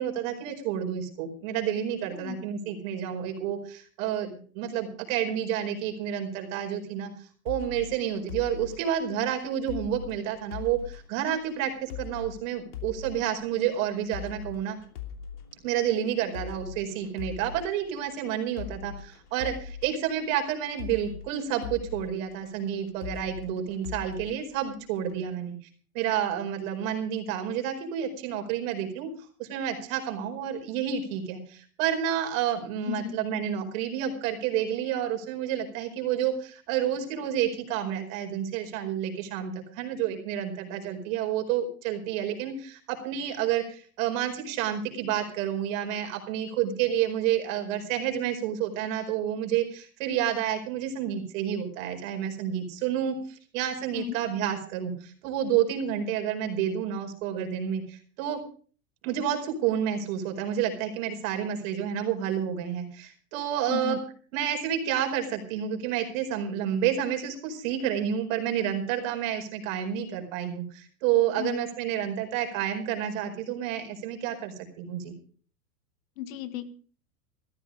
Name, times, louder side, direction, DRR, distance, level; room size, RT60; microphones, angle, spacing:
voice 1, 0.0-7.1 7.4-14.8 15.6-25.5 25.9-29.1 29.4-58.4 59.0-64.0 64.3-75.1, right 9 dB, 55° right, 4 dB, 4.9 m, -30 dB
sound 1, 7.5-25.2, left 8 dB, 80° left, 3.0 m, -42 dB
voice 2, 32.9-33.2 54.0-54.2 63.7-64.0 71.4-71.6 76.2-76.6, left 12 dB, 60° left, 12 dB, 1.7 m, -34 dB
15.0 x 13.0 x 5.1 m, 0.42 s
hypercardioid pair, 110°, 45 cm